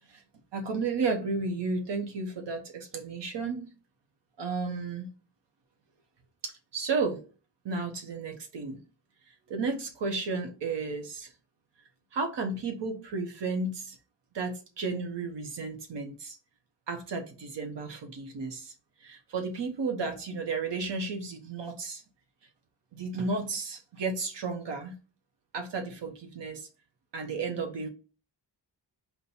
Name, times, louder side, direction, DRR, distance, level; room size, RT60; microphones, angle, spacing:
voice 1, 0.5-3.6 4.4-5.1 6.4-7.2 7.6-8.8 9.3-11.3 12.1-14.0 14.3-16.4 16.9-18.7 19.0-22.0 22.9-25.0 25.5-26.7 27.1-27.9, right 4 dB, 75° right, 0.8 m, -33 dB
4.1 x 2.1 x 4.2 m
wide cardioid pair, 90°, 43 cm